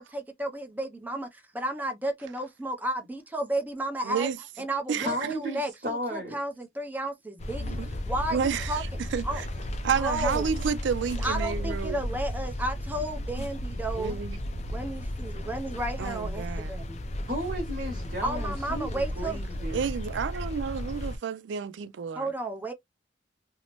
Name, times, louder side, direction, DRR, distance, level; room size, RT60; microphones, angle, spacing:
voice 1, 0.0-4.3 4.6-7.7 8.1-8.8 9.2-9.4 10.0-10.5 11.2-14.2 14.7-17.0 18.2-19.4 22.1-22.7, right 1 dB, 10° right, 0.6 m, -33 dB
voice 2, 4.0-4.4 4.9-5.1 7.6-7.9 8.3-9.5 9.8-12.0 13.3-13.5 14.0-14.4 16.0-16.8 19.7-22.3, right 6 dB, 85° right, 0.4 m, -30 dB
voice 3, 5.0-6.4 11.4-11.7 17.3-19.8, equal, 50° right, 1.1 m, -34 dB
sound 1, 7.4-21.2, left 1 dB, 40° left, 0.4 m, -34 dB
2.7 x 2.0 x 2.9 m
head